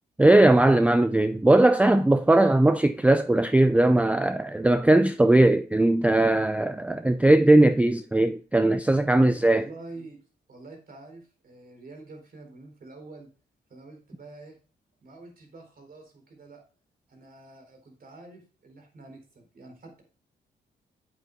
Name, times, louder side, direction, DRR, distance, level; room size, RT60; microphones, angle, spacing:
voice 1, 0.2-9.7, right 1 dB, 5° right, 0.4 m, -19 dB
voice 2, 9.1-10.2 10.5-13.3 13.7-14.6 15.0-16.6 17.1-20.0, right 2 dB, 55° right, 3.9 m, -46 dB
8.7 x 8.0 x 2.2 m
cardioid pair, 80°, 19 cm